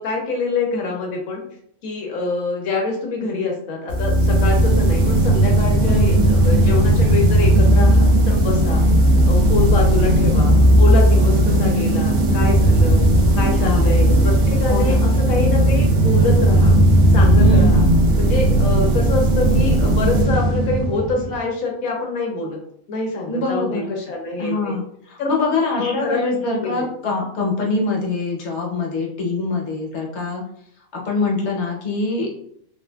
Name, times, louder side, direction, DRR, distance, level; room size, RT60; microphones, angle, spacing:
voice 1, 0.0-1.4 1.8-8.8 9.3-13.1 13.4-16.7 17.1-17.8 18.2-22.6 22.9-24.7 25.2-26.2 26.6-26.8 29.4-29.5, left 3 dB, 85° left, 0 dB, 1.1 m, -25 dB
sound 1, 3.9-21.4, right 1 dB, 85° right, 1.1 m, -15 dB
voice 2, 5.8-6.3 13.6-14.0 14.7-15.0 17.4-18.0 23.3-23.9 24.4-30.4 30.9-32.4, left 3 dB, 60° left, -2 dB, 1.1 m, -24 dB
3.2 x 2.3 x 2.2 m, 0.71 s
omnidirectional pair, 1.4 m